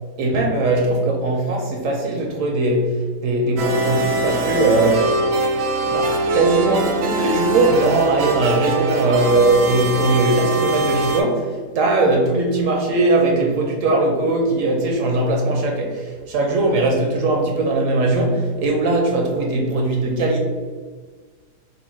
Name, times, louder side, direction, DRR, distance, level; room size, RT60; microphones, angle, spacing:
voice 1, 0.2-5.2 5.8-20.4, right 2 dB, 65° right, 0 dB, 0.9 m, -19 dB
sound 1, 3.6-11.2, right 2 dB, 80° right, 1.2 m, -22 dB
3.9 x 2.2 x 4.4 m, 1.5 s
omnidirectional pair, 1.7 m